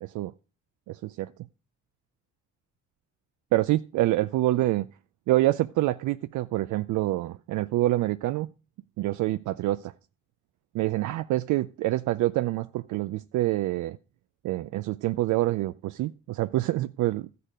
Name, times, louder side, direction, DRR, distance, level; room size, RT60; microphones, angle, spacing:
voice 1, 0.0-0.3 0.9-1.3 3.5-4.9 5.3-8.5 9.0-9.9 10.7-14.0 14.4-17.3, right 16 dB, 75° right, 0.5 m, -26 dB
13.0 x 6.8 x 5.0 m
cardioid pair, 90°, 30 cm